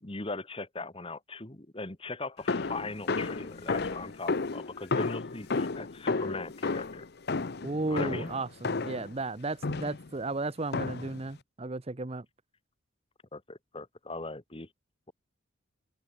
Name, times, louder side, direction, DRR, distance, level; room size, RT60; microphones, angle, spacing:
voice 1, 0.0-7.0 7.9-8.3 13.3-14.7, left 3 dB, 25° left, 1.5 m, -40 dB
sound 1, 2.5-9.1 9.6-10.1 10.7-11.2, left 3 dB, 50° left, 0.7 m, -32 dB
voice 2, 7.6-12.3, right 2 dB, 30° right, 0.7 m, -34 dB
open air
head